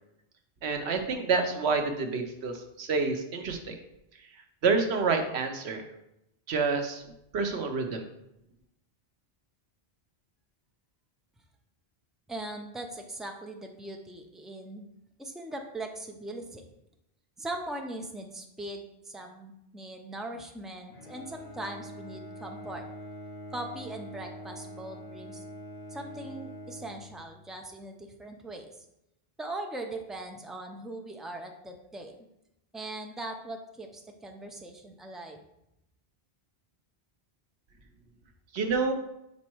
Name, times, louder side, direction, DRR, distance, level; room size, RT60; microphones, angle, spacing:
voice 1, 0.6-3.8 4.6-5.9 6.5-7.0 7.3-8.1 38.5-38.9, right 4 dB, 85° right, 5 dB, 1.1 m, -28 dB
voice 2, 12.3-14.9 15.2-16.6 17.4-22.8 23.5-25.4 25.9-28.7 29.4-32.1 32.7-35.4, right 2 dB, ahead, 3 dB, 0.4 m, -40 dB
Bowed string instrument, 20.9-27.6, equal, 75° left, 1.4 m, -44 dB
5.3 x 4.2 x 4.5 m, 0.84 s
omnidirectional pair, 1.1 m